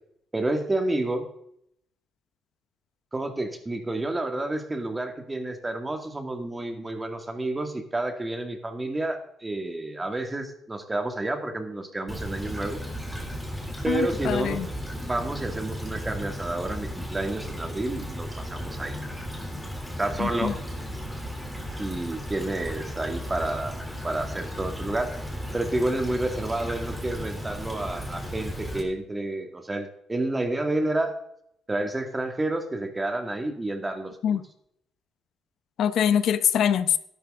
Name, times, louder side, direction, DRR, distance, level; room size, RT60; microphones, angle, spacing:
voice 1, 0.3-1.3 3.1-12.8 13.8-14.6 15.0-19.0 20.0-20.6 21.8-23.8 24.0-25.2 25.5-31.1 31.7-34.4, right 2 dB, 20° right, 6 dB, 2.1 m, -30 dB
Stream / Trickle dribble, 12.1-28.8, equal, ahead, 3.4 m, -35 dB
voice 2, 13.9-14.7 20.2-20.5 34.2-34.4 35.8-37.0, left 9 dB, 70° left, 13 dB, 0.8 m, -24 dB
12.5 x 12.0 x 3.8 m, 0.72 s
cardioid pair, 90°, 0 cm